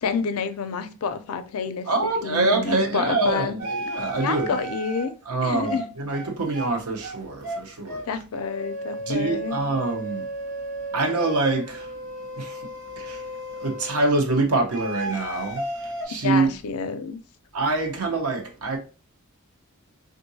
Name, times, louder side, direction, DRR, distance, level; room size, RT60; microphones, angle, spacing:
voice 1, 0.0-1.9 2.2-3.6 4.2-5.1 5.4-5.9 8.1-9.6 16.2-17.2, left 5 dB, 75° left, 0.4 m, -28 dB
voice 2, 1.9-4.6 5.3-8.0 9.1-10.2 10.9-11.9 12.4-12.7 13.0-13.3 13.6-16.5 17.5-18.8, right 3 dB, 80° right, 0.8 m, -25 dB
sound 1, 3.6-5.1 5.7-5.8 6.1-6.3 6.5-6.7 7.0-7.2 7.4-7.6 7.9-8.1 8.3-14.1 14.7-16.1, right 1 dB, 60° right, 1.3 m, -34 dB
3.6 x 2.5 x 2.7 m
head